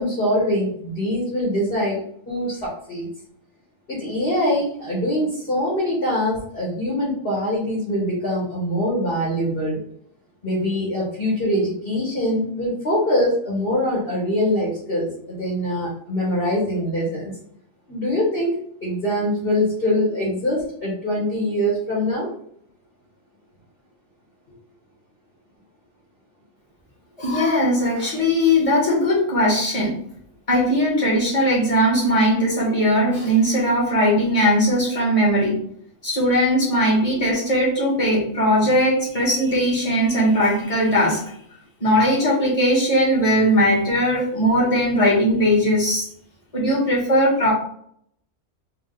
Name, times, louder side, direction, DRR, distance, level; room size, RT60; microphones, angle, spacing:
voice 1, 0.0-2.0 2.3-3.1 3.9-9.8 10.4-17.3 17.9-22.3, equal, 40° left, -6 dB, 1.4 m, -23 dB
voice 2, 27.2-30.0 30.5-35.6 36.0-41.2 41.8-46.1 46.5-47.5, equal, 25° left, -6 dB, 1.8 m, -19 dB
3.7 x 2.5 x 3.8 m, 0.64 s
omnidirectional pair, 1.5 m